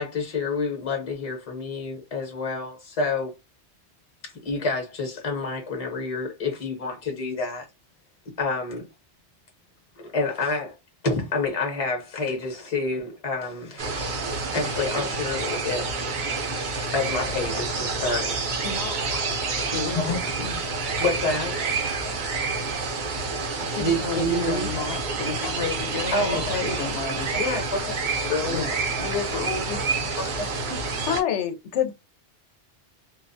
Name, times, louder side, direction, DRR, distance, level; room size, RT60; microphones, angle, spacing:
voice 1, 0.0-3.3 4.2-7.7 8.4-8.9 10.0-10.8 11.0-14.2 14.5-15.9 16.5-18.4 20.0-20.2 21.0-21.6 23.8-24.7 25.4-25.6 26.1-26.6 27.3-27.8 28.2-28.6, left 3 dB, 35° left, 0.8 m, -28 dB
sound 1, 13.8-31.2, right 4 dB, 55° right, 0.6 m, -28 dB
voice 2, 18.6-19.2 19.6-20.6 23.6-27.3 28.5-28.7 29.0-29.8, left 4 dB, 65° left, 0.8 m, -32 dB
voice 3, 31.1-31.9, left 10 dB, 90° left, 0.9 m, -25 dB
2.3 x 2.1 x 2.5 m
omnidirectional pair, 1.2 m